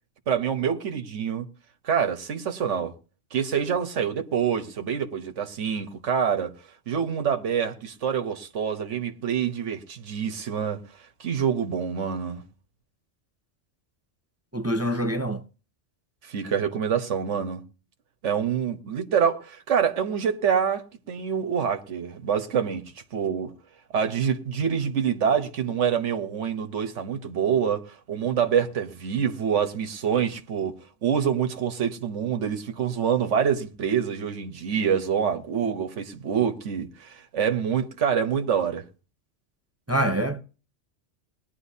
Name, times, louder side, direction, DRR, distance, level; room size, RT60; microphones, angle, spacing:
voice 1, 0.3-1.5 1.8-2.9 3.3-6.5 6.9-10.8 11.2-12.4 16.2-17.6 18.2-22.8 23.1-23.5 23.9-30.7 31.0-38.8, right 7 dB, 80° right, 1.4 m, -26 dB
voice 2, 14.5-15.4 39.9-40.4, right 1 dB, 20° right, 0.5 m, -25 dB
20.0 x 11.0 x 2.8 m
omnidirectional pair, 1.2 m